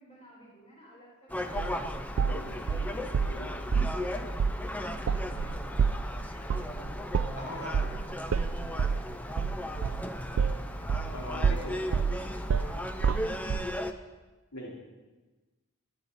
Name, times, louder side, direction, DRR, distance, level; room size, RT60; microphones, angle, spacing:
voice 1, 0.0-4.3 4.6-5.9 6.2-9.9 10.3-13.1, equal, 30° left, -3 dB, 4.2 m, -54 dB
Gull seagull, 1.3-13.9, left 1 dB, 5° left, 0.6 m, -36 dB
sound 1, 1.6-3.4 3.7-4.0 4.4-4.6 4.9-11.2 11.4-13.7, right 6 dB, 65° right, 0.4 m, -28 dB
voice 2, 7.4-7.8 11.1-11.8 14.5-14.7, left 1 dB, 85° left, -4 dB, 3.8 m, -40 dB
sound 2, 10.3-12.7, equal, 55° left, 2.4 m, -53 dB
22.0 x 11.5 x 4.1 m, 1.2 s
head